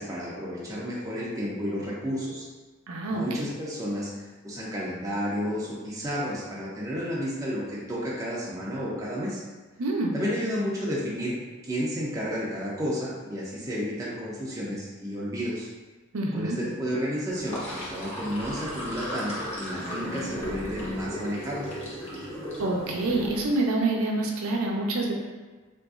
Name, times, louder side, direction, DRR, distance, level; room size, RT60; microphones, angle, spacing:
voice 1, 0.0-2.4 3.1-4.1 4.4-9.4 10.1-11.4 11.6-15.7 16.3-21.7, equal, 15° right, -6 dB, 0.5 m, -31 dB
voice 2, 2.9-3.2 9.8-10.1 16.1-16.6 22.6-25.1, right 2 dB, 85° right, 0 dB, 0.5 m, -26 dB
Sink (filling or washing), 17.3-23.6, equal, 35° left, 0.8 m, -36 dB
3.9 x 2.5 x 2.4 m, 1.3 s
head